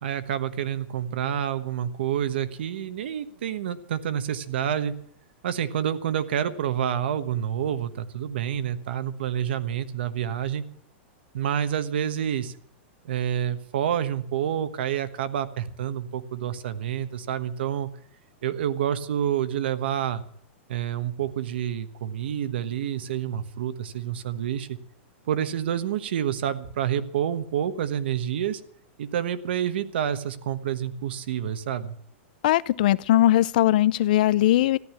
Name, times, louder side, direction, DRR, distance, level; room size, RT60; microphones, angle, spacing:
voice 1, 0.0-4.9 5.4-10.6 11.3-12.5 13.0-17.9 18.4-20.2 20.7-24.8 25.3-28.6 29.0-31.9, right 9 dB, 60° right, 1.2 m, -28 dB
voice 2, 32.4-34.8, left 14 dB, 45° left, 0.5 m, -20 dB
14.5 x 11.0 x 7.2 m
supercardioid pair, 180°, 6 cm